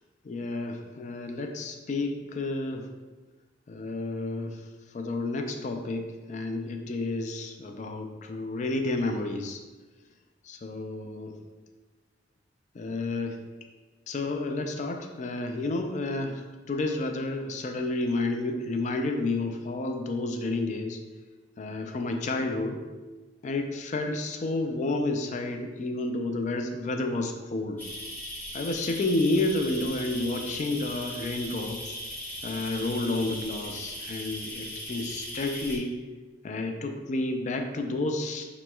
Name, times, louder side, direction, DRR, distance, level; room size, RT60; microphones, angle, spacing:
voice 1, 0.2-2.9 3.7-4.6 4.9-9.6 10.5-11.4 12.7-13.4 14.1-21.0 21.6-22.8 23.4-27.8 28.5-32.0 32.4-35.9 36.4-38.4, left 2 dB, 40° left, 5 dB, 0.3 m, -30 dB
sound 1, 27.8-35.8, equal, 10° left, 0.7 m, -38 dB
5.0 x 3.0 x 2.2 m, 1.3 s
head